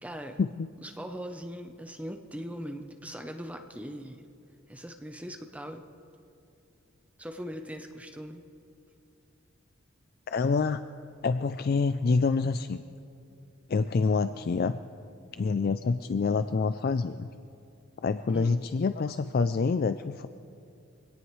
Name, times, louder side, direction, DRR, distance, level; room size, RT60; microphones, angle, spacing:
voice 1, 0.0-0.4 0.8-4.2 4.7-5.8 7.2-8.4 18.3-18.5, equal, 5° right, 5 dB, 0.7 m, -40 dB
voice 2, 10.3-10.8 11.2-12.8 13.7-14.8 15.4-17.3 18.0-20.3, left 4 dB, 45° left, 11 dB, 0.3 m, -27 dB
24.5 x 17.5 x 3.2 m, 2.6 s
head